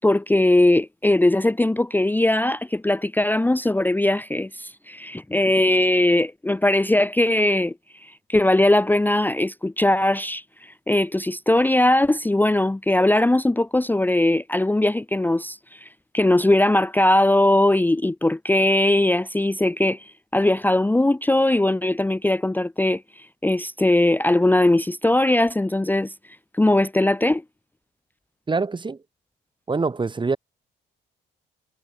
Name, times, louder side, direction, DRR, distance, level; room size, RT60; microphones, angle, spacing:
voice 1, 0.0-27.5, left 1 dB, 10° left, 0.8 m, -20 dB
voice 2, 28.5-29.0 29.7-30.4, right 4 dB, 25° right, 1.2 m, -24 dB
cardioid pair, 90°, 20 cm